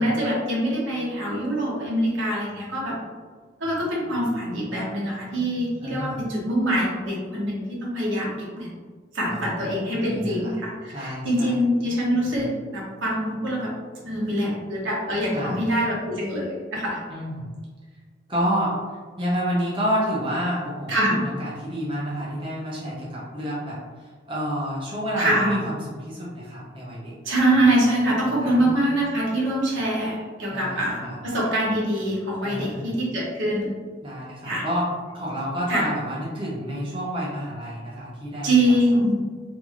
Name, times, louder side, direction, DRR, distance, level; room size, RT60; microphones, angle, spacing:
voice 1, 0.0-3.0 3.6-8.3 8.6-8.7 9.1-13.7 14.0-17.0 20.9-21.2 25.2-25.6 27.2-33.7 34.4-34.7 35.7-35.9 38.4-39.2, right 1 dB, 75° right, -4 dB, 0.9 m, -24 dB
voice 2, 5.8-6.2 9.3-9.5 10.0-10.6 10.9-11.6 15.3-15.6 17.1-17.5 18.3-18.8 19.2-27.2 28.4-28.6 30.5-31.2 32.4-32.9 34.0-34.9 35.1-38.6, equal, 25° right, -7 dB, 0.6 m, -29 dB
3.0 x 2.6 x 2.4 m, 1.5 s
head